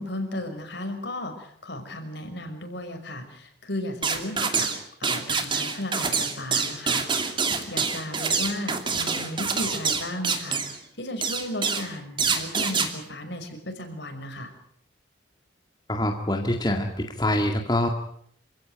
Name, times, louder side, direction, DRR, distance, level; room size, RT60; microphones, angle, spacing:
voice 1, 0.0-4.7 5.0-7.4 7.7-14.5, left 1 dB, 65° left, 5 dB, 5.6 m, -35 dB
sound 1, 4.0-4.8 5.0-10.8 11.2-11.9 12.2-12.9, right 5 dB, 25° right, 2.7 m, -26 dB
voice 2, 15.9-17.9, left 1 dB, 20° left, 3 dB, 2.0 m, -25 dB
27.5 x 16.5 x 9.2 m, 0.66 s
head